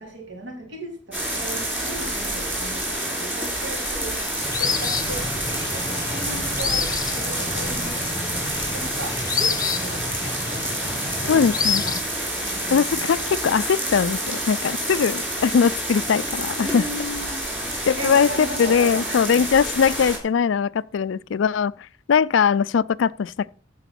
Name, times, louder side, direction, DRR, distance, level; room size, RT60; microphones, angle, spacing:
voice 1, 0.0-10.4 10.9-13.0 16.6-19.4, right 1 dB, 65° right, 3.9 m, -37 dB
sound 1, 1.1-20.2, right 1 dB, 10° right, 3.5 m, -28 dB
sound 2, 4.4-12.0, left 5 dB, 20° left, 1.0 m, -28 dB
voice 2, 11.3-11.8 12.7-16.8 17.9-21.7 22.1-23.5, left 6 dB, 75° left, 0.4 m, -21 dB
14.0 x 4.9 x 5.9 m
head